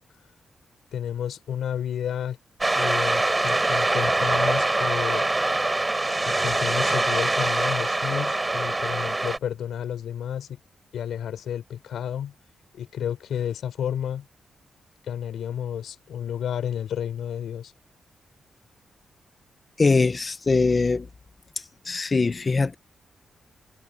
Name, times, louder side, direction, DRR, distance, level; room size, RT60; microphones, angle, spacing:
voice 1, 0.9-2.4 2.7-5.3 6.2-10.6 10.9-12.3 12.7-14.2 15.0-17.7, left 9 dB, 90° left, 4.7 m, -31 dB
sound 1, 2.6-9.4, right 2 dB, 20° right, 7.1 m, -24 dB
voice 2, 19.8-21.1 21.8-22.7, left 4 dB, 35° left, 1.7 m, -22 dB
cardioid pair, 95°, 0 cm